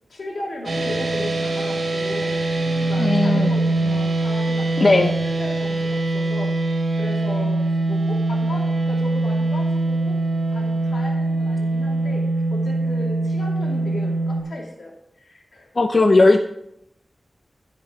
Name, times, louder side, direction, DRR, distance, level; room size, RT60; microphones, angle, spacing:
voice 1, 0.1-2.4 2.8-10.2 10.5-14.9 15.2-15.7, left 1 dB, 75° left, -2 dB, 2.8 m, -36 dB
sound 1, 0.6-14.4, right 2 dB, 75° right, 1.9 m, -23 dB
voice 2, 3.0-3.5 4.8-5.1 15.8-16.4, left 2 dB, 45° left, 6 dB, 0.5 m, -16 dB
16.0 x 5.3 x 3.9 m, 0.80 s
wide cardioid pair, 65°, 0 cm